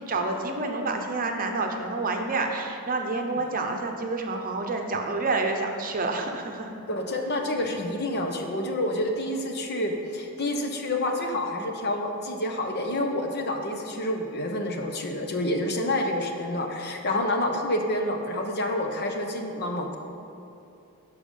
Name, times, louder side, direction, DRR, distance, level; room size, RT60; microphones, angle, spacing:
voice 1, 0.0-6.7, right 3 dB, 40° right, 3 dB, 0.8 m, -28 dB
voice 2, 6.9-20.0, left 1 dB, 50° left, 3 dB, 1.0 m, -28 dB
12.5 x 4.9 x 5.5 m, 2.7 s
head